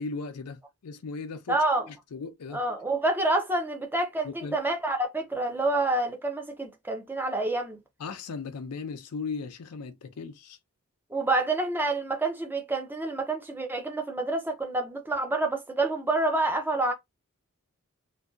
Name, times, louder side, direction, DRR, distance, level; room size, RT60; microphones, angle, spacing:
voice 1, 0.0-1.6 1.9-2.6 4.2-4.6 8.0-10.6, left 4 dB, 90° left, 0.5 m, -37 dB
voice 2, 1.5-1.9 2.5-7.8 11.1-16.9, right 2 dB, 10° right, 0.5 m, -28 dB
2.6 x 2.2 x 2.3 m
head